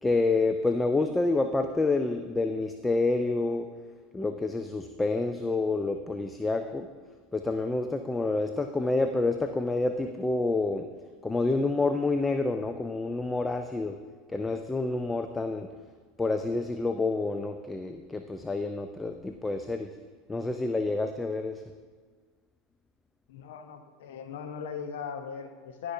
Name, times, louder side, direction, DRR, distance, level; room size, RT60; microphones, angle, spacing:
voice 1, 0.0-3.7 4.1-6.9 7.3-10.8 11.2-14.0 14.3-15.7 16.2-19.9 20.3-21.6, left 3 dB, 15° left, 7 dB, 0.4 m, -28 dB
voice 2, 23.3-25.9, left 7 dB, 65° left, 7 dB, 0.7 m, -39 dB
12.5 x 5.3 x 2.7 m, 1.5 s
figure-of-eight pair, 80°, 0 cm